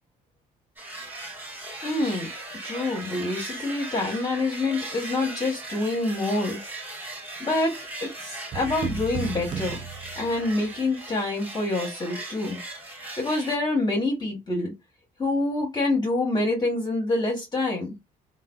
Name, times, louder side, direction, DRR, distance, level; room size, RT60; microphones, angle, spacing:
sound 1, 0.8-13.6, right 2 dB, 10° right, 1.2 m, -38 dB
voice 1, 1.8-2.3 2.6-6.6 7.4-7.7 8.0-9.8 10.2-12.6 12.9-14.7 15.2-17.9, left 2 dB, 25° left, 1.1 m, -26 dB
sound 2, 8.5-10.8, right 6 dB, 30° right, 0.4 m, -35 dB
3.2 x 2.2 x 2.3 m
cardioid pair, 110°, 17 cm